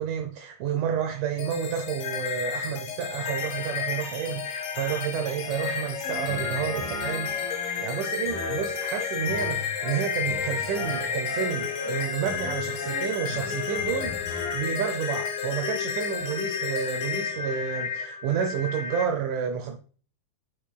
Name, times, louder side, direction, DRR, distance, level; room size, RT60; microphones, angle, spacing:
voice 1, 0.0-19.8, right 8 dB, 80° right, 1.8 m, -30 dB
sound 1, 1.4-19.0, left 7 dB, 80° left, 3.6 m, -31 dB
sound 2, 6.0-14.6, left 1 dB, 40° left, 2.2 m, -38 dB
12.0 x 5.0 x 2.3 m
omnidirectional pair, 4.4 m